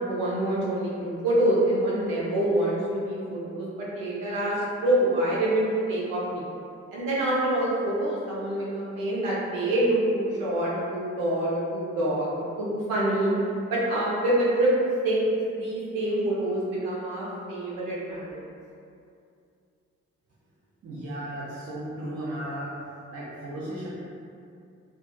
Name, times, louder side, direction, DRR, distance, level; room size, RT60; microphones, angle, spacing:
voice 1, 0.1-6.5 6.9-13.3 13.7-14.7 15.0-18.3, right 1 dB, 80° right, -7 dB, 0.6 m, -26 dB
voice 2, 20.8-22.7 23.1-23.9, right 1 dB, 40° right, -9 dB, 0.7 m, -35 dB
2.4 x 2.4 x 2.3 m, 2.4 s
hypercardioid pair, 40°, 35 cm